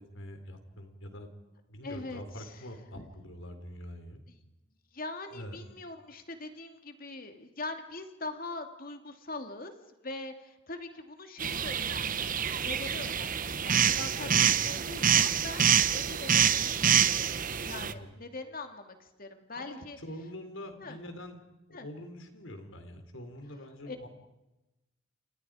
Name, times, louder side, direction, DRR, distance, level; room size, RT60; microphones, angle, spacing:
voice 1, 0.1-1.3 1.7-4.2 5.3-5.6 14.2-14.4 17.8-18.2 19.5-21.4 21.7-24.1, left 1 dB, 80° left, 7 dB, 4.0 m, -44 dB
voice 2, 1.8-2.6 2.9-3.1 4.9-9.7 10.0-14.3 14.6-20.0 20.8-21.0 21.7-21.9 23.9-24.0, left 2 dB, 45° left, 6 dB, 2.6 m, -42 dB
sound 1, 11.4-17.9, right 8 dB, 45° right, 1.0 m, -26 dB
29.0 x 28.5 x 5.1 m, 1.0 s
head